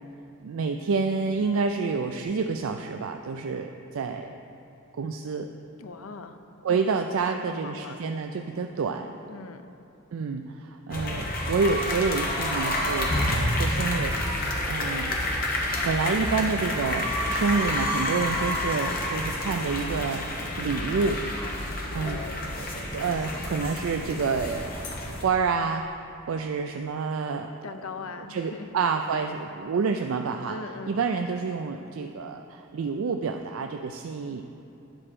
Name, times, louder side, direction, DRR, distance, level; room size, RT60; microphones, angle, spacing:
voice 1, 0.4-4.4 4.9-5.5 6.6-9.1 10.1-14.2 14.7-15.1 15.8-20.3 20.6-21.2 21.9-22.2 22.9-26.0 26.3-27.5 28.3-30.6 30.9-34.4, right 4 dB, 75° right, 5 dB, 0.4 m, -28 dB
voice 2, 5.8-6.4 6.7-8.0 9.3-9.6 22.0-22.5 27.6-28.8 29.1-29.3 30.5-31.0, left 4 dB, 80° left, 8 dB, 0.6 m, -40 dB
sound 1, 10.9-25.2, left 1 dB, 45° left, 1.2 m, -29 dB
10.5 x 4.3 x 6.7 m, 2.9 s
head